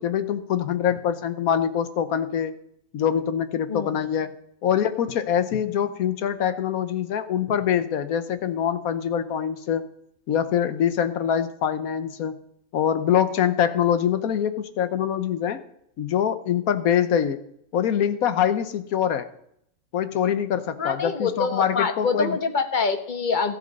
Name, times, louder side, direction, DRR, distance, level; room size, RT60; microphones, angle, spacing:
voice 1, 0.0-2.5 2.9-4.3 4.6-9.9 10.3-12.4 12.7-15.6 16.0-17.4 17.7-19.3 19.9-22.4, left 9 dB, 75° left, 12 dB, 1.3 m, -24 dB
voice 2, 20.8-23.6, left 4 dB, 35° left, 8 dB, 1.0 m, -25 dB
13.5 x 8.0 x 5.4 m, 0.71 s
omnidirectional pair, 1.5 m